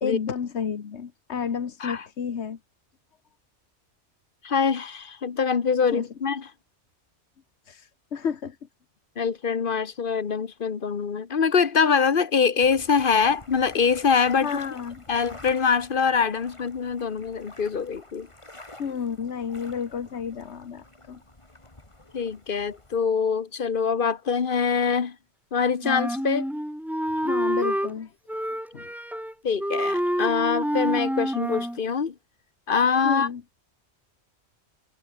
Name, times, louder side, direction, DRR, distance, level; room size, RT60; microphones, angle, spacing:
voice 1, 0.0-2.6 5.9-6.1 7.6-8.6 14.4-15.0 18.8-21.2 27.2-28.1 28.7-28.9 33.0-33.4, left 7 dB, 70° left, 1.5 m, -31 dB
voice 2, 4.4-6.5 9.2-14.5 15.1-18.3 22.1-25.2 25.5-26.5 29.4-32.1 32.7-33.3, left 6 dB, 50° left, 1.3 m, -24 dB
sound 1, 12.6-23.0, left 2 dB, 25° left, 2.9 m, -48 dB
Wind instrument woodwind instrument, 25.8-27.9 28.3-29.3 29.6-31.8, equal, ahead, 0.7 m, -27 dB
omnidirectional pair, 1.2 m